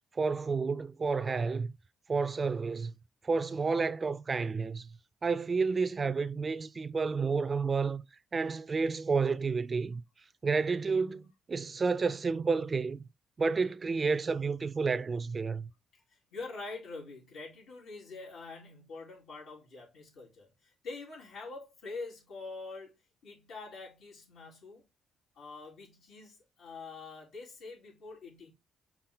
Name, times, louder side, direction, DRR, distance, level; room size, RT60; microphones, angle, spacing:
voice 1, 0.2-1.7 2.1-2.9 3.2-4.9 5.2-8.0 8.3-10.0 10.4-13.0 13.4-15.7, right 4 dB, 35° right, 0.5 m, -30 dB
voice 2, 15.9-22.9 23.2-24.8 25.3-28.5, left 3 dB, 75° left, 4.1 m, -45 dB
5.9 x 4.1 x 3.9 m
cardioid pair, 90°, 0 cm